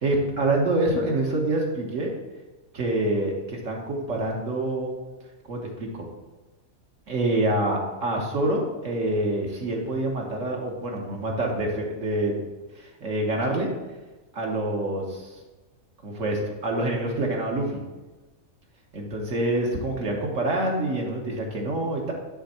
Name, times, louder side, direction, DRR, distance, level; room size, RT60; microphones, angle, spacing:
voice 1, 0.0-2.1 2.7-4.9 5.5-6.1 7.1-12.4 12.7-13.7 14.3-15.3 16.0-17.8 18.9-22.1, right 1 dB, 65° right, -1 dB, 1.5 m, -26 dB
10.0 x 3.5 x 4.3 m, 1.2 s
omnidirectional pair, 1.5 m